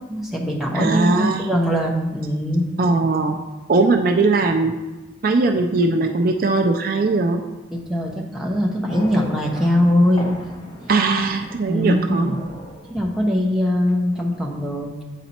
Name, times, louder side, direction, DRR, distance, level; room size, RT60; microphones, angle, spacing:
voice 1, 0.1-2.7 7.7-10.3 11.7-12.4 12.9-15.0, left 1 dB, ahead, -2 dB, 0.8 m, -21 dB
voice 2, 0.7-1.4 2.8-3.4 3.7-4.7 5.2-7.4 10.9-12.3, right 3 dB, 45° right, 4 dB, 0.4 m, -19 dB
sound 1, 8.9-13.7, left 1 dB, 20° left, 1.2 m, -38 dB
7.9 x 4.1 x 4.3 m, 1.1 s
head